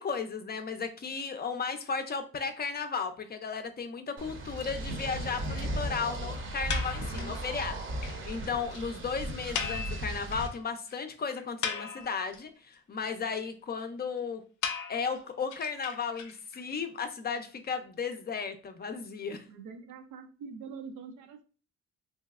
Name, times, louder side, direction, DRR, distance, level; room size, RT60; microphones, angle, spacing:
voice 1, 0.0-14.4 14.9-19.4, left 5 dB, 30° left, 7 dB, 0.5 m, -35 dB
sound 1, 4.2-10.5, right 1 dB, 40° right, 0.7 m, -36 dB
sound 2, 6.7-7.4 7.7-7.8 8.0-8.2 8.4-8.5 8.7-8.8 9.5-10.6 10.9-11.0 11.4-12.4 14.6-16.6, left 7 dB, 80° left, 0.5 m, -36 dB
voice 2, 19.5-21.4, right 5 dB, 85° right, 7 dB, 0.6 m, -44 dB
3.0 x 2.8 x 2.4 m, 0.37 s
cardioid pair, 90°, 30 cm